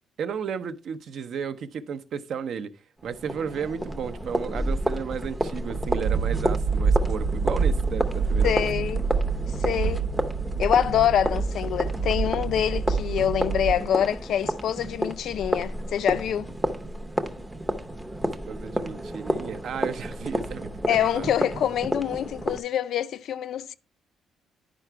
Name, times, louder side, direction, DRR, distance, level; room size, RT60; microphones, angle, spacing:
voice 1, 0.2-2.7 3.0-8.7 18.5-21.3, right 7 dB, 50° right, 0.6 m, -33 dB
sound 1, 3.0-22.6, equal, 5° right, 0.6 m, -31 dB
sound 2, 5.6-14.1, right 5 dB, 90° right, 0.8 m, -27 dB
voice 2, 8.4-9.1 9.6-10.1 10.6-16.5 20.9-23.7, left 9 dB, 55° left, 0.4 m, -25 dB
11.0 x 5.0 x 4.5 m
cardioid pair, 175°, 0 cm